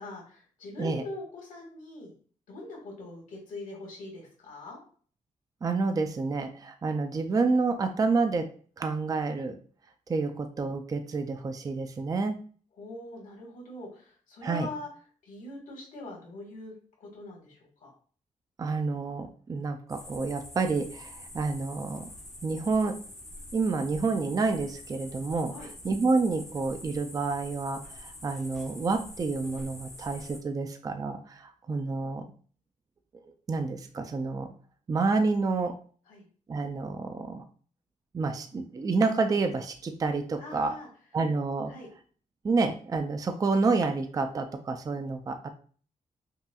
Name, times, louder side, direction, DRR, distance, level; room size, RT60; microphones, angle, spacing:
voice 1, 0.0-2.1 2.5-4.8 10.2-10.3 12.8-14.9 15.2-16.7 17.0-17.9 25.5-25.7 36.1-36.3 40.4-40.9 41.7-41.9, left 2 dB, 85° left, 0 dB, 1.7 m, -42 dB
voice 2, 5.6-8.5 8.8-9.5 10.1-12.3 14.4-14.7 18.6-22.1 22.4-23.0 23.5-25.5 25.8-32.2 33.5-34.5 34.9-35.7 36.5-37.4 38.1-40.7 41.1-41.7 42.4-45.5, right 4 dB, 25° right, 7 dB, 0.4 m, -29 dB
sound 1, 19.9-30.4, left 1 dB, 5° left, 1.3 m, -46 dB
5.5 x 2.5 x 2.3 m, 0.43 s
wide cardioid pair, 135°, 13 cm